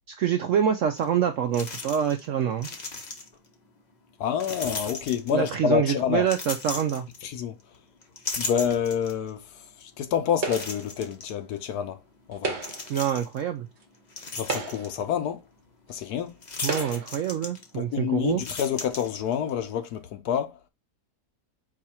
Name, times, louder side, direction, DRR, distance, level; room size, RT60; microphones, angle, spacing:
voice 1, 0.1-2.7 5.3-7.1 12.9-13.7 16.6-18.4, right 9 dB, 70° right, 0.7 m, -26 dB
sound 1, 1.0-1.1 1.5-2.3 2.5-3.5 4.4-5.6 6.2-7.6 8.0-9.3 9.8-9.9 10.5-11.3 12.6-13.4 13.9-15.0 16.4-17.9 18.3-19.5, left 3 dB, 40° left, 0.6 m, -36 dB
voice 2, 4.2-6.3 7.2-7.6 8.4-9.4 9.8-12.0 12.3-12.6 14.4-15.4 15.9-16.4 17.7-20.6, left 8 dB, 75° left, 1.1 m, -28 dB
sound 2, 10.4-10.9 12.3-13.0 13.8-13.9 14.4-15.1 15.9-16.0 16.6-17.2, right 4 dB, 50° right, 1.0 m, -33 dB
4.8 x 2.4 x 4.2 m
omnidirectional pair, 1.8 m